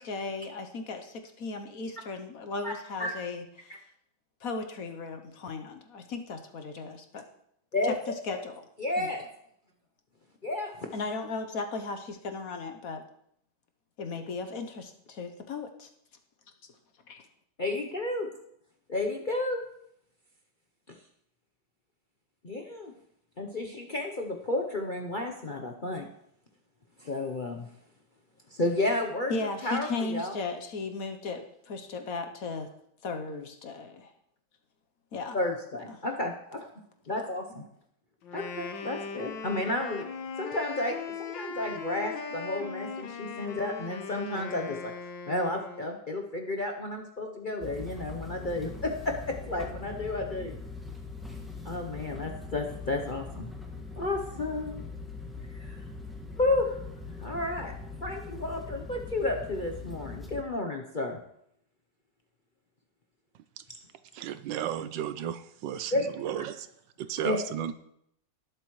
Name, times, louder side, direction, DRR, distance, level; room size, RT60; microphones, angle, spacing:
voice 1, 0.0-3.8 4.4-7.2 8.2-8.6 9.0-9.1 10.9-13.0 14.0-15.9 17.1-17.2 29.3-32.7 33.0-34.1 35.1-35.4 35.9-36.0, left 3 dB, 55° left, 6 dB, 1.2 m, -36 dB
voice 2, 7.7-8.4 8.8-9.3 10.4-10.9 17.6-18.3 18.9-19.6 20.9-21.0 22.4-22.9 23.4-26.1 27.0-27.7 28.6-29.3 29.6-30.3 35.3-36.7 37.1-37.6 38.3-40.0 40.4-44.9 45.3-50.5 51.6-53.5 54.0-54.8 55.6-55.8 56.4-56.8 57.2-57.7 58.0-61.2 65.9-66.1 66.4-66.5 67.2-67.4, left 2 dB, 40° left, 2 dB, 0.7 m, -32 dB
Wind instrument woodwind instrument, 38.2-46.0, left 5 dB, 90° left, 1.8 m, -39 dB
sound 1, 47.6-60.4, left 3 dB, ahead, 1.5 m, -41 dB
voice 3, 64.1-66.7 67.0-67.7, right 10 dB, 80° right, 12 dB, 1.4 m, -34 dB
19.0 x 7.9 x 3.2 m, 0.73 s
omnidirectional pair, 2.0 m